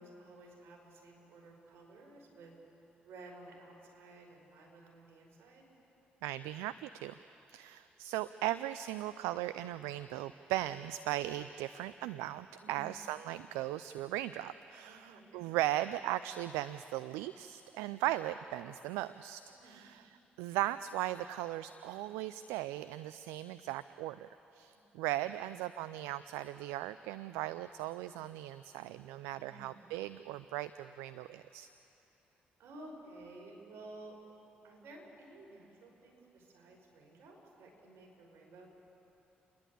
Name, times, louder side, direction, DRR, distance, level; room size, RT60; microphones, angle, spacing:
voice 1, 0.0-2.5 3.0-5.6 12.6-13.0 14.8-15.5 19.5-19.9 24.7-24.9 29.4-29.9 32.6-34.2 34.6-38.7, right 2 dB, 65° right, -1 dB, 5.2 m, -54 dB
voice 2, 6.2-7.1 7.5-20.0 20.4-31.7, right 14 dB, 80° right, 14 dB, 0.4 m, -38 dB
29.5 x 11.5 x 8.4 m, 2.9 s
hypercardioid pair, 45°, 4 cm